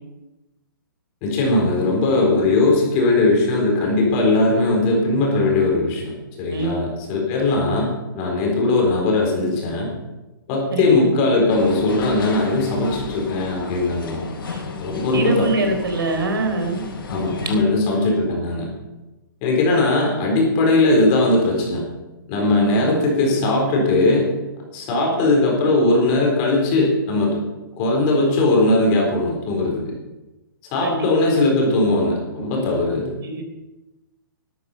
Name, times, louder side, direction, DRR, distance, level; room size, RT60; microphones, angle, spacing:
voice 1, 1.2-9.9 10.5-14.3 14.8-15.7 17.1-18.7 19.4-21.8 22.3-24.3 24.7-27.4 27.8-29.8 30.7-33.1, left 2 dB, 25° left, -1 dB, 4.1 m, -19 dB
voice 2, 6.5-6.8 10.7-11.1 14.4-14.6 15.1-16.8 22.7-23.0 30.8-31.4 33.2-33.4, right 3 dB, 80° right, 5 dB, 3.9 m, -24 dB
sound 1, 11.5-17.6, left 4 dB, 75° left, 5.8 m, -34 dB
12.5 x 12.0 x 5.6 m, 1.1 s
hypercardioid pair, 165°, 12 cm